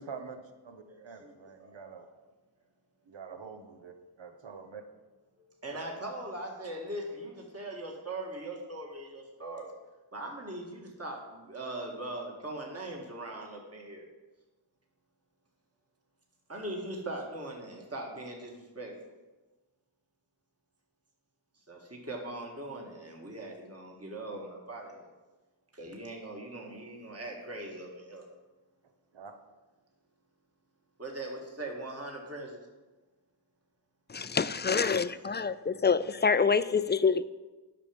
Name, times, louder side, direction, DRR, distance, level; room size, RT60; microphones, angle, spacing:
voice 1, 0.0-2.1 3.1-4.8 5.7-5.8 29.1-29.3, right 5 dB, 80° right, 1.0 m, -46 dB
voice 2, 0.9-1.3 1.6-1.7 5.6-9.7 10.1-14.1 16.5-18.9 21.7-25.1 25.7-28.3 31.0-32.7, right 1 dB, 35° right, 1.8 m, -40 dB
voice 3, 34.1-37.2, left 5 dB, 25° left, 0.3 m, -26 dB
8.9 x 5.9 x 5.2 m
cardioid pair, 45°, 45 cm